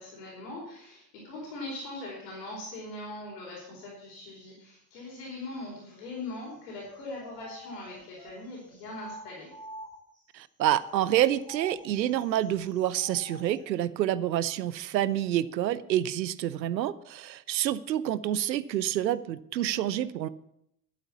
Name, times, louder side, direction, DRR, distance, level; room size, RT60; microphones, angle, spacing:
voice 1, 0.0-9.5, left 2 dB, 70° left, -4 dB, 4.7 m, -41 dB
sound 1, 6.8-10.2 10.7-13.7, equal, 10° left, 3.8 m, -48 dB
voice 2, 10.3-20.3, right 12 dB, 85° right, 17 dB, 0.7 m, -28 dB
11.5 x 9.2 x 7.0 m, 0.77 s
hypercardioid pair, 75°, 50 cm